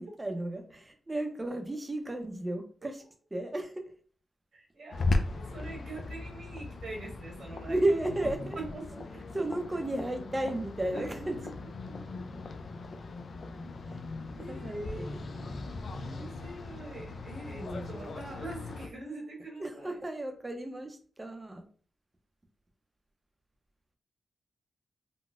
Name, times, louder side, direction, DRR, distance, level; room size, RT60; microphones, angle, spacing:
voice 1, 0.0-3.0 3.3-3.8 7.7-8.6 9.3-11.4 13.9-14.0 14.5-15.5 17.5-18.2 19.6-21.7, right 1 dB, 20° right, 6 dB, 0.5 m, -34 dB
voice 2, 4.5-8.2 8.5-9.2 10.9-11.5 11.9-12.4 14.3-15.1 16.0-20.0, right 2 dB, 70° right, -1 dB, 1.2 m, -44 dB
sound 1, 4.9-18.9, left 3 dB, 60° left, 0.4 m, -38 dB
3.9 x 2.1 x 2.3 m, 0.44 s
cardioid pair, 90°, 0 cm